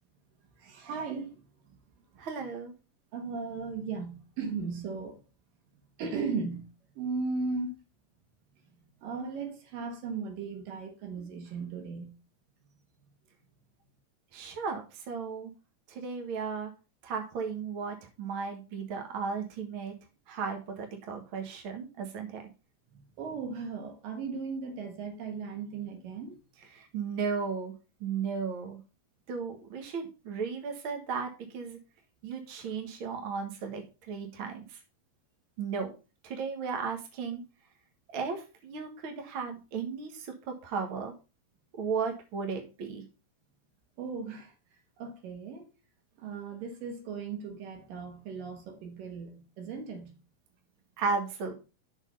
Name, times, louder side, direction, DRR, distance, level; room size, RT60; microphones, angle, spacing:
voice 1, 0.6-1.8 3.1-5.2 6.0-6.7 7.0-7.8 9.0-12.2 23.2-26.4 44.0-44.5 45.0-45.7 46.2-50.2, right 4 dB, 75° right, 3.1 m, -37 dB
voice 2, 2.2-2.7 14.3-15.5 15.9-16.7 17.0-20.0 20.3-22.4 26.7-27.7 28.0-28.8 29.3-31.8 32.2-34.8 35.6-35.9 36.2-37.4 38.1-41.1 41.8-43.0 51.0-51.5, right 5 dB, 50° right, 1.8 m, -35 dB
6.6 x 6.4 x 5.5 m
omnidirectional pair, 4.1 m